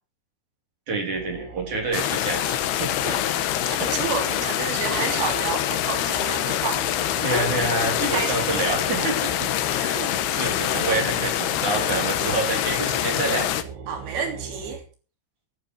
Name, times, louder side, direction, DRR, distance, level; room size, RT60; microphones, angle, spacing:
voice 1, 0.9-2.9 3.8-3.9 7.2-9.5 9.8-13.5, right 3 dB, 40° right, 1 dB, 4.2 m, -27 dB
sound 1, 1.2-14.8, right 5 dB, 90° right, 5.2 m, -40 dB
sound 2, 1.9-13.6, left 12 dB, 75° left, 2.4 m, -25 dB
voice 2, 3.6-7.5 7.9-9.1 9.9-10.1 13.9-14.8, right 6 dB, 60° right, 4 dB, 5.1 m, -31 dB
15.0 x 11.5 x 4.7 m, 0.37 s
omnidirectional pair, 5.8 m